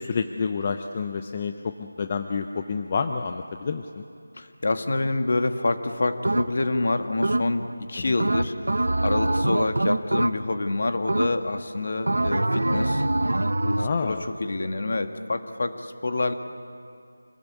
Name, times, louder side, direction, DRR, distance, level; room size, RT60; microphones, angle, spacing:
voice 1, 0.0-4.1 8.0-8.2 13.8-14.2, left 5 dB, 20° left, 7 dB, 0.5 m, -29 dB
voice 2, 4.3-13.0 13.6-16.3, left 2 dB, 45° left, 7 dB, 1.5 m, -27 dB
sound 1, 6.2-6.8 7.2-7.8 8.2-10.7 11.1-11.6 12.1-14.0, right 1 dB, 90° right, 1.0 m, -24 dB
26.5 x 19.0 x 8.3 m, 2.4 s
figure-of-eight pair, 175°, 0 cm